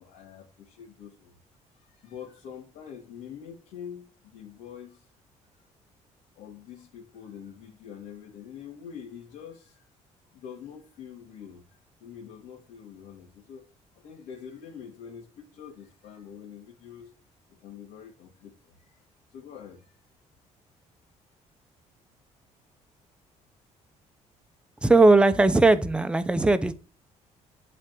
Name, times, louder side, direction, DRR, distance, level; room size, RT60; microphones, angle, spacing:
voice 1, 0.0-1.4 1.7-5.1 6.4-9.9 10.3-13.7 14.0-17.1 17.6-19.0 19.3-20.0, left 8 dB, 90° left, 2.5 m, -45 dB
voice 2, 24.8-26.7, right 2 dB, 10° right, 0.8 m, -19 dB
11.5 x 4.4 x 7.6 m
cardioid pair, 170°, 13 cm